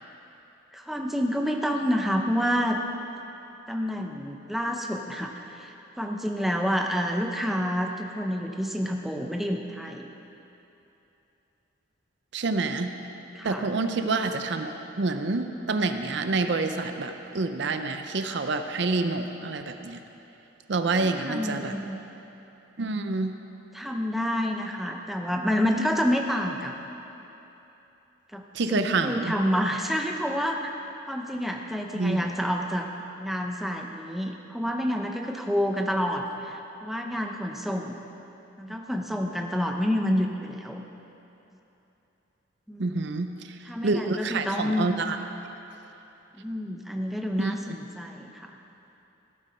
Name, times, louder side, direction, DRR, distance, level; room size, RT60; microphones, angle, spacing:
voice 1, 0.7-2.8 3.7-10.1 13.3-13.7 20.9-22.0 23.7-26.7 28.3-30.6 31.1-32.9 33.2-38.0 38.6-40.8 42.7-43.2 43.6-44.9 46.4-48.6, equal, ahead, 2 dB, 0.6 m, -28 dB
voice 2, 12.3-12.9 13.4-14.7 15.0-20.0 20.7-21.7 22.8-23.3 28.5-29.3 31.9-32.3 42.8-43.6 43.8-45.2 47.4-47.5, right 3 dB, 55° right, 7 dB, 0.5 m, -27 dB
15.5 x 9.0 x 4.3 m, 3.0 s
head